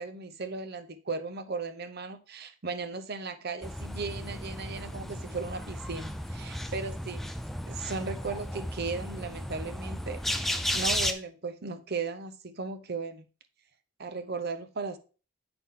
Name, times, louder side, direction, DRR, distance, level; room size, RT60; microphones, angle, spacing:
voice 1, 0.0-7.3 7.7-13.2 14.0-15.0, right 4 dB, 50° right, 11 dB, 0.8 m, -36 dB
sound 1, 3.6-11.1, equal, ahead, 0.4 m, -34 dB
8.7 x 6.1 x 3.7 m, 0.36 s
head